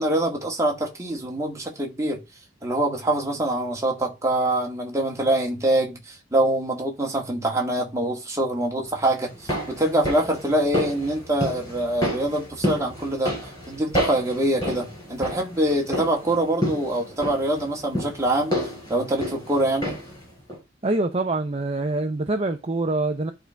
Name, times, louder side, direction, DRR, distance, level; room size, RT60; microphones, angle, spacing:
voice 1, 0.0-2.2 2.6-13.3 13.7-18.6 18.9-20.0, right 1 dB, 15° right, 2.0 m, -24 dB
sound 1, 9.2-20.2 20.5-20.6, equal, 20° left, 4.4 m, -30 dB
voice 2, 20.8-23.3, right 2 dB, 30° right, 0.7 m, -25 dB
11.0 x 3.9 x 4.6 m
head